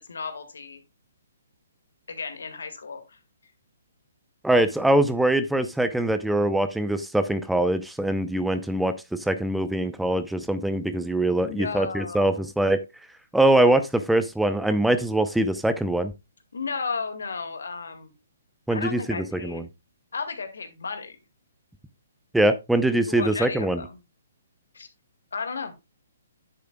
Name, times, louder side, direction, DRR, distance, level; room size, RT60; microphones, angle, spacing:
voice 1, 0.1-0.8 2.1-3.2 11.4-12.5 16.5-18.1 18.7-19.6 20.1-21.2 23.1-24.0 24.7-24.9 25.3-25.7, left 5 dB, 75° left, 8 dB, 2.0 m, -34 dB
voice 2, 4.4-8.9 9.3-12.8 13.3-16.1 18.7-19.6 22.3-23.8, right 1 dB, 5° right, 11 dB, 0.7 m, -23 dB
9.9 x 8.4 x 2.3 m, 0.23 s
hypercardioid pair, 135°, 0 cm